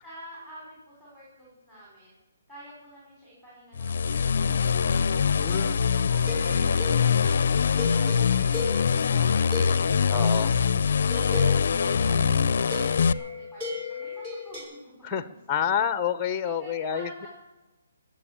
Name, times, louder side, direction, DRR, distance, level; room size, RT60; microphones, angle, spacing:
voice 1, 0.0-2.2 2.5-8.6 8.9-10.0 10.7-15.6 16.6-17.3, equal, 10° right, -7 dB, 5.7 m, -49 dB
sound 1, 3.8-13.1, left 6 dB, 55° left, 0.5 m, -23 dB
voice 2, 5.4-5.8 10.1-10.6 15.0-17.3, left 7 dB, 10° left, 13 dB, 0.8 m, -28 dB
sound 2, 6.3-10.6 11.1-14.6, left 4 dB, 25° right, 5.5 m, -36 dB
20.0 x 7.3 x 8.7 m, 1.1 s
hypercardioid pair, 170°, 0 cm